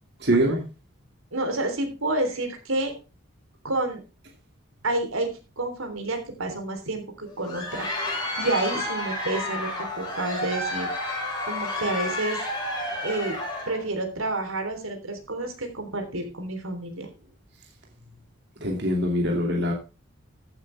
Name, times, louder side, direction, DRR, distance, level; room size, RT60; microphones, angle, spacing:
voice 1, 0.2-0.6 18.6-19.7, right 1 dB, 55° right, 2.5 m, -23 dB
voice 2, 1.3-2.9 3.6-4.0 4.8-5.3 5.6-7.9 8.4-10.9 11.5-12.4 13.0-13.4 13.7-17.1, right 2 dB, 80° right, 3.5 m, -29 dB
Crowd, 7.3-13.8, left 1 dB, 20° left, 6.8 m, -31 dB
14.5 x 8.7 x 3.4 m
head